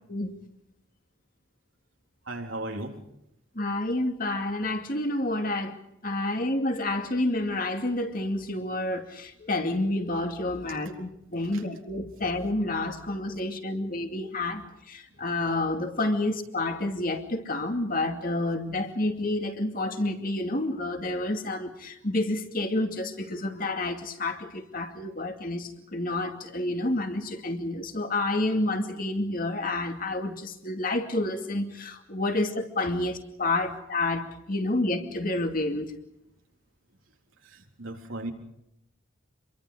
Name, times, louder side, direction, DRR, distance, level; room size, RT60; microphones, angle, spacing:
voice 1, 2.3-3.0 11.5-11.6 37.5-38.3, right 2 dB, 90° right, 1 dB, 3.8 m, -36 dB
voice 2, 3.6-5.8 6.0-35.9, left 2 dB, 45° left, 5 dB, 2.4 m, -29 dB
28.0 x 23.0 x 5.0 m, 0.80 s
head